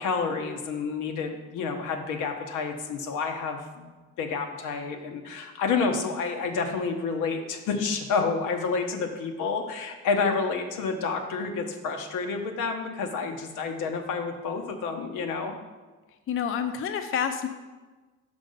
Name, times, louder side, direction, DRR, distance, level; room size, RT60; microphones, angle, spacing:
voice 1, 0.0-15.6, left 4 dB, 85° left, 4 dB, 0.9 m, -29 dB
voice 2, 16.3-17.5, left 7 dB, 45° left, 7 dB, 0.5 m, -28 dB
5.3 x 5.2 x 5.3 m, 1.3 s
cardioid pair, 90°, 30 cm